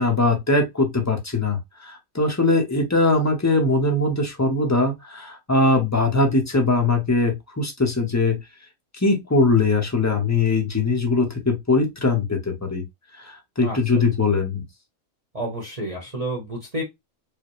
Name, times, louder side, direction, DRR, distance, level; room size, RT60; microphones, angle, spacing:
voice 1, 0.0-8.4 9.0-12.8 13.2-14.6, left 3 dB, 15° left, 0.7 m, -21 dB
voice 2, 15.3-16.8, right 1 dB, 30° right, 1.1 m, -30 dB
4.9 x 2.1 x 3.1 m
omnidirectional pair, 1.4 m